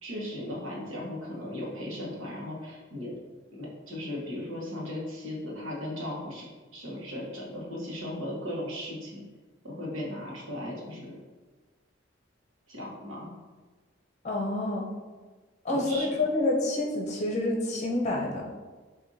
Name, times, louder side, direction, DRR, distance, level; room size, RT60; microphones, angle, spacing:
voice 1, 0.0-3.2 3.5-6.5 6.7-9.2 9.6-11.2 12.7-13.3 15.7-16.2, left 1 dB, 85° right, -3 dB, 1.2 m, -37 dB
voice 2, 14.2-14.9 15.6-18.4, left 2 dB, 35° left, -2 dB, 0.8 m, -28 dB
6.1 x 2.7 x 2.7 m, 1.3 s
head